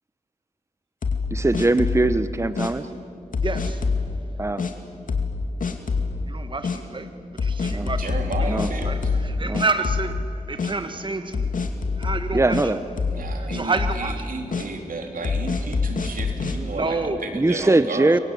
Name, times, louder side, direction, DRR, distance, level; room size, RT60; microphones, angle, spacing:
sound 1, 1.0-2.1 2.6-2.7 3.3-4.1 4.6-4.7 5.1-5.4 5.6-6.1 6.6-6.8 7.4-9.3 9.5-10.3 10.6-10.7 11.3-12.7 13.0-13.3 13.5-14.0 14.5-14.7 15.2-16.6, left 4 dB, 75° left, 2.5 m, -25 dB
voice 1, 1.3-2.9 4.4-4.6 7.7-7.9 8.5-8.7 9.4-9.6 12.3-12.8 17.3-18.2, right 2 dB, 20° right, 12 dB, 0.9 m, -21 dB
voice 2, 3.4-3.8 6.3-8.1 8.4-11.6 12.0-12.7 13.3-14.3 16.5-17.2 17.6-17.7, right 3 dB, 35° right, 8 dB, 1.5 m, -29 dB
voice 3, 7.7-9.0 13.1-18.2, right 3 dB, 90° right, 3 dB, 3.6 m, -33 dB
29.0 x 23.5 x 8.6 m, 2.6 s
cardioid pair, 70°, 14 cm